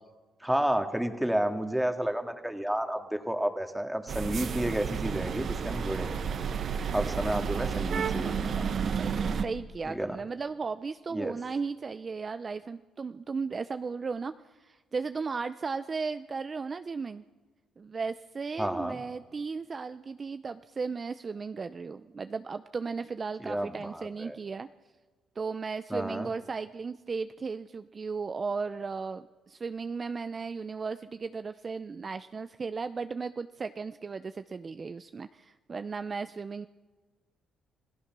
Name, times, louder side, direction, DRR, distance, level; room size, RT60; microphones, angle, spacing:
voice 1, 0.4-6.2 6.9-8.7 9.9-10.2 11.1-11.3 18.6-19.0 23.4-24.4 25.9-26.3, right 1 dB, 5° right, 6 dB, 2.0 m, -31 dB
sound 1, 4.1-9.5, right 6 dB, 55° right, 1.3 m, -31 dB
voice 2, 7.0-7.4 9.0-17.2 17.8-24.7 25.4-36.7, right 4 dB, 35° right, 11 dB, 0.6 m, -36 dB
27.5 x 17.5 x 6.1 m, 1.3 s
cardioid pair, 90°, 0 cm